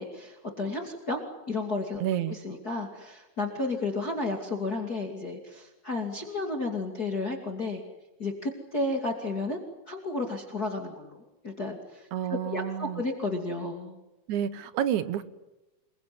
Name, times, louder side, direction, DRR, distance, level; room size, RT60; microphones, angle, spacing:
voice 1, 0.0-2.0 2.3-7.8 8.2-9.6 9.9-12.1 12.5-14.0, left 2 dB, 30° left, 4 dB, 2.6 m, -32 dB
voice 2, 2.0-2.4 12.1-13.0 14.3-15.2, right 10 dB, 65° right, 13 dB, 2.2 m, -29 dB
27.5 x 22.5 x 9.6 m, 0.99 s
omnidirectional pair, 4.3 m